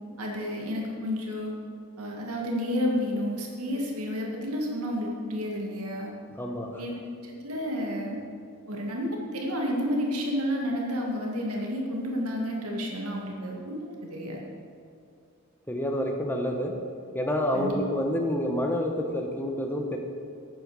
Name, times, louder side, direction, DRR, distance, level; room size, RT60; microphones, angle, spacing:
voice 1, 0.2-1.5 2.0-6.1 6.8-6.9 7.2-8.2 8.7-13.8 14.1-14.4 17.5-17.8, equal, 85° right, -1 dB, 2.0 m, -30 dB
voice 2, 6.4-6.8 15.7-16.8 17.1-20.0, left 1 dB, 10° left, 2 dB, 1.1 m, -28 dB
12.0 x 9.1 x 4.9 m, 2.5 s
head